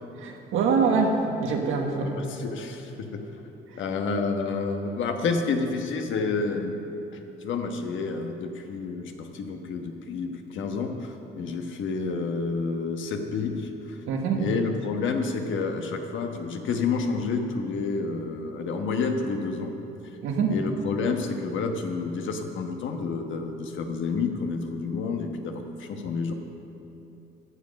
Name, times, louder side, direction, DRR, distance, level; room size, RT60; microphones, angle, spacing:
voice 1, 0.2-2.5 14.1-14.4 20.2-20.5, right 5 dB, 90° right, 2 dB, 1.5 m, -25 dB
voice 2, 2.0-3.2 3.7-6.8 7.4-19.7 20.0-20.2 20.5-26.3, left 4 dB, 75° left, 4 dB, 1.2 m, -29 dB
14.5 x 7.6 x 5.3 m, 3.0 s
cardioid pair, 90°, 20 cm